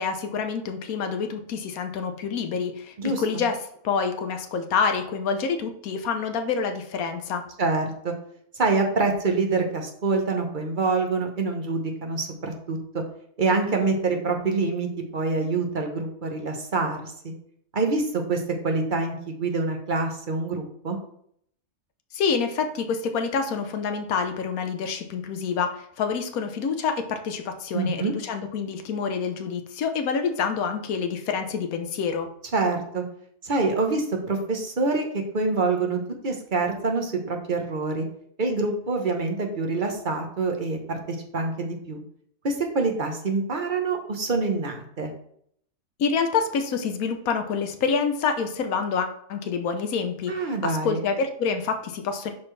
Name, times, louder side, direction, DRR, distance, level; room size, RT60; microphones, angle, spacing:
voice 1, 0.0-3.6 3.8-7.4 22.1-32.3 46.0-52.3, left 5 dB, 80° left, 6 dB, 1.3 m, -27 dB
voice 2, 3.0-3.4 7.6-8.1 8.5-13.0 13.4-17.3 17.7-21.0 27.7-28.1 32.5-33.0 33.4-38.1 38.4-42.0 42.4-45.1 50.3-51.0, right 3 dB, 35° right, 3 dB, 1.1 m, -26 dB
11.5 x 4.2 x 3.3 m, 0.67 s
omnidirectional pair, 1.5 m